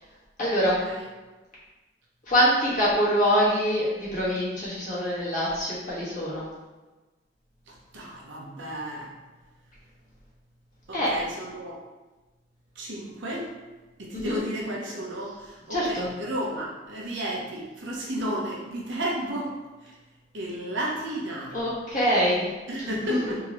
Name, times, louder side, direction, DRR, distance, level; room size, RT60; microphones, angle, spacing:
voice 1, 0.4-0.7 2.3-6.5 10.9-11.1 14.1-14.4 15.7-16.1 21.5-22.5 22.8-23.3, equal, 45° left, -8 dB, 1.3 m, -24 dB
voice 2, 7.7-9.1 10.9-11.8 12.8-13.5 14.0-19.5 19.8-19.9 20.3-21.6 22.7-23.4, right 1 dB, 85° right, -3 dB, 0.9 m, -33 dB
3.7 x 2.9 x 3.0 m, 1.2 s
head